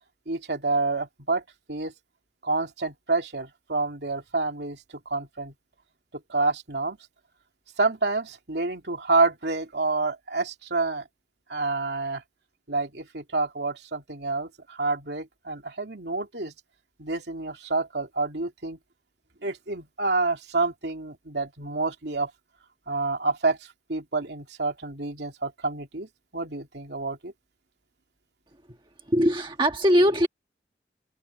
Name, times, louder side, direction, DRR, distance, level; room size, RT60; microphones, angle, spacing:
voice 1, 0.3-1.4 1.7-1.9 2.4-5.5 6.1-7.0 7.8-11.1 11.5-12.2 12.7-16.5 17.0-18.8 19.4-22.3 22.9-23.6 23.9-27.3, right 3 dB, 70° right, 2.8 m, -28 dB
voice 2, 29.1-30.3, equal, 25° right, 1.3 m, -21 dB
head